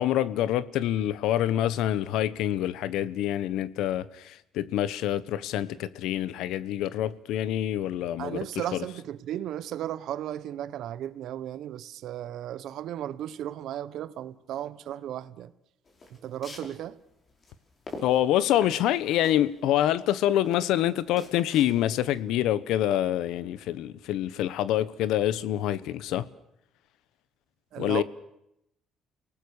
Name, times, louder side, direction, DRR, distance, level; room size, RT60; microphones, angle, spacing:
voice 1, 0.0-8.4 8.7-8.8 18.0-26.3 27.8-28.0, left 12 dB, 80° left, 1.1 m, -26 dB
voice 2, 8.2-15.5 16.1-17.0 27.7-28.0, right 11 dB, 70° right, 1.3 m, -35 dB
sound 1, 15.8-22.1, left 2 dB, 35° left, 5.4 m, -45 dB
29.5 x 18.5 x 6.6 m
cardioid pair, 120°, 0 cm